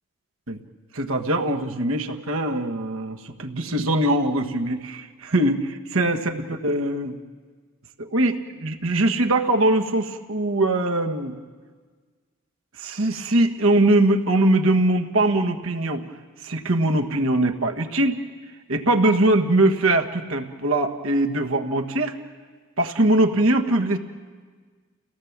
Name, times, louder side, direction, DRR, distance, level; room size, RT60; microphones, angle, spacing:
voice 1, 0.9-7.2 8.0-8.3 8.6-11.3 12.8-16.0 16.4-18.2 18.7-22.1 22.8-24.0, right 1 dB, 75° right, 4 dB, 1.5 m, -22 dB
30.0 x 17.5 x 7.3 m, 1.5 s
head